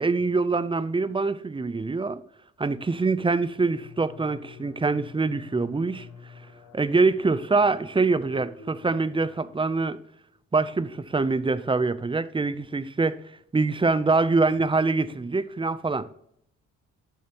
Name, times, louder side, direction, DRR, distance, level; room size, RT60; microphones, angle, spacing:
voice 1, 0.0-2.2 2.6-6.1 6.7-10.0 10.5-13.2 13.5-16.1, right 3 dB, 15° right, 0.6 m, -24 dB
sound 1, 3.1-10.0, left 5 dB, 75° left, 1.8 m, -49 dB
12.0 x 6.9 x 3.0 m
cardioid pair, 90°, 30 cm